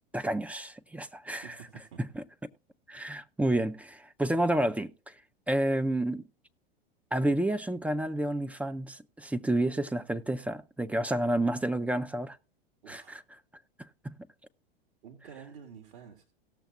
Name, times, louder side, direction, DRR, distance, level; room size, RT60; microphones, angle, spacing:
voice 1, 0.1-1.5 2.0-2.2 2.9-5.1 5.5-6.2 7.1-12.4 12.9-13.2 13.8-14.3, right 1 dB, 5° right, 0.5 m, -30 dB
voice 2, 1.4-2.0 12.8-13.2 15.0-16.2, right 7 dB, 60° right, 2.1 m, -49 dB
18.0 x 7.0 x 2.5 m
hypercardioid pair, 95°, 30 cm